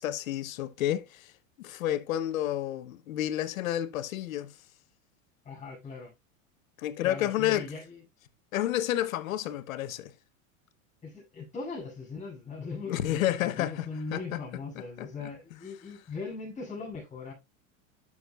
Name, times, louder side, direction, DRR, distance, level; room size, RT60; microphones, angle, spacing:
voice 1, 0.0-1.3 1.6-4.5 6.8-7.7 8.5-10.1 12.9-13.9 14.1-14.2 15.0-15.1, left 13 dB, 85° left, 1.0 m, -30 dB
voice 2, 5.4-6.1 7.0-8.0 11.0-17.3, left 4 dB, 20° left, 6.4 m, -39 dB
11.0 x 7.1 x 2.3 m
supercardioid pair, 130°, 40 cm